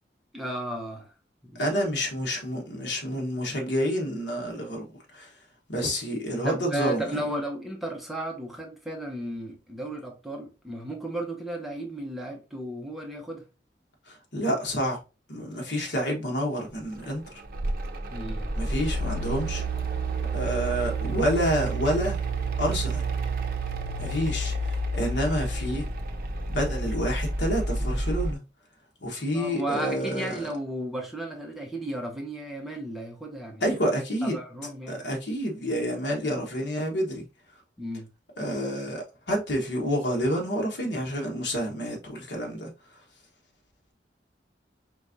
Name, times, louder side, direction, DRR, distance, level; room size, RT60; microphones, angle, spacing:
voice 1, 0.3-1.1 1.4-1.6 6.4-13.4 18.1-18.5 29.3-33.6 34.2-35.0 37.8-38.1, right 1 dB, ahead, 0.8 m, -34 dB
voice 2, 1.6-4.9 5.1-5.3 5.7-7.2 14.1-15.0 15.3-17.3 18.6-19.6 20.3-22.2 22.6-23.0 24.0-25.9 26.5-28.4 29.0-30.5 33.6-34.4 34.9-37.2 38.4-42.7, equal, 75° left, 1.3 m, -28 dB
Mechanical fan, 17.0-28.3, right 2 dB, 55° right, 0.6 m, -29 dB
4.5 x 3.4 x 2.6 m
head